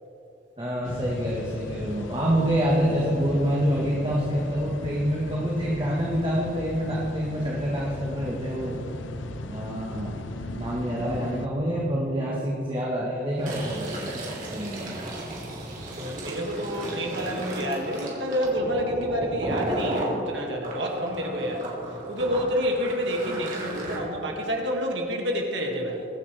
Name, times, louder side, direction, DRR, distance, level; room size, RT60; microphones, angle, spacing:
voice 1, 0.6-8.8 9.5-10.2 10.5-14.2 14.5-15.0, equal, 25° right, -4 dB, 1.4 m, -27 dB
sound 1, 0.8-11.5, left 2 dB, 90° left, 0.8 m, -37 dB
Fill (with liquid), 13.3-20.1 20.6-23.9, right 1 dB, 45° right, 3.1 m, -34 dB
voice 2, 15.7-21.7 22.1-26.1, equal, 75° right, 0 dB, 2.1 m, -28 dB
23.0 x 9.5 x 3.4 m, 2.9 s
head